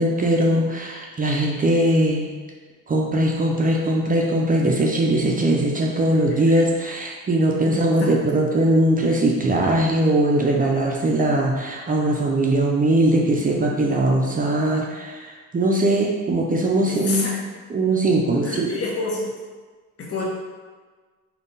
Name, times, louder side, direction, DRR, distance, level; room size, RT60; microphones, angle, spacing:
voice 1, 0.0-2.3 2.9-17.3 17.7-18.7, right 1 dB, 30° right, -1 dB, 0.5 m, -20 dB
voice 2, 6.3-6.6 7.6-8.4 16.8-17.3 18.4-19.3 20.0-20.2, left 3 dB, 50° left, -4 dB, 1.1 m, -29 dB
3.6 x 2.3 x 3.9 m, 1.4 s
cardioid pair, 90°, 30 cm